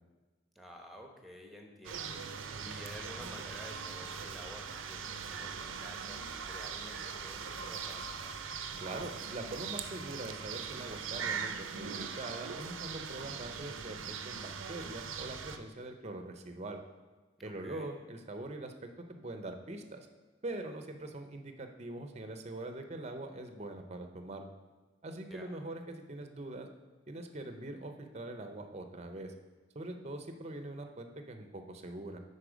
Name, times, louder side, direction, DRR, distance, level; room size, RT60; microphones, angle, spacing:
voice 1, 0.5-8.4 17.4-17.9 25.3-25.5, equal, ahead, 2 dB, 0.9 m, -51 dB
sound 1, 1.8-15.6, right 6 dB, 85° right, 0.6 m, -41 dB
voice 2, 8.8-16.8 17.4-20.1 20.4-24.5 25.0-26.7 27.1-29.3 29.7-32.2, right 2 dB, 35° right, 6 dB, 0.6 m, -43 dB
9.9 x 4.2 x 5.0 m, 1.3 s
head